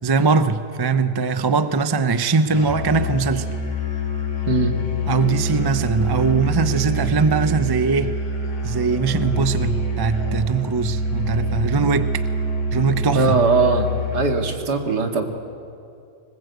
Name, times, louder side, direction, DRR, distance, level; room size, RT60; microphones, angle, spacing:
voice 1, 0.0-3.5 5.1-8.1 8.6-12.2 12.7-13.4, right 4 dB, 25° right, 0.5 m, -21 dB
Musical instrument, 2.5-14.4, right 1 dB, 80° left, 3.6 m, -25 dB
voice 2, 13.1-13.9 14.1-15.2, right 4 dB, 75° right, 2.6 m, -20 dB
26.0 x 20.0 x 8.2 m
omnidirectional pair, 1.8 m